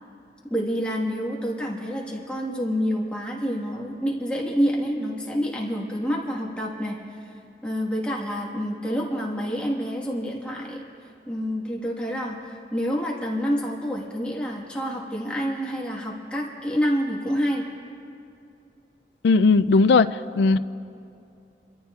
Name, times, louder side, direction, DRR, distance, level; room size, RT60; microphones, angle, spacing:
voice 1, 0.5-7.0 7.6-10.8 11.3-17.6, equal, 5° left, -3 dB, 1.5 m, -27 dB
voice 2, 19.2-20.6, left 4 dB, 80° left, 13 dB, 0.4 m, -18 dB
28.5 x 13.5 x 2.4 m, 2.6 s
head